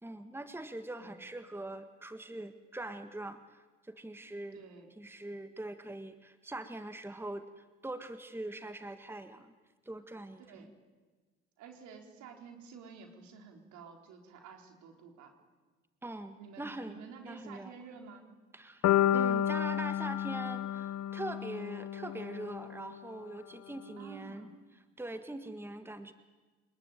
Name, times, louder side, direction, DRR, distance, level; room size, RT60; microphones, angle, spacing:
voice 1, 0.0-4.6 5.0-9.5 9.8-10.7 16.0-17.0 17.2-17.8 18.5-18.9 19.1-24.5 25.0-26.1, right 2 dB, 5° right, 9 dB, 1.7 m, -42 dB
voice 2, 4.5-4.9 10.4-10.7 11.6-15.3 16.4-18.3 24.0-24.5, right 6 dB, 65° right, 4 dB, 4.3 m, -51 dB
sound 1, 18.8-22.9, left 11 dB, 55° left, 1.2 m, -31 dB
24.0 x 21.0 x 9.3 m, 1.3 s
hypercardioid pair, 55°, 31 cm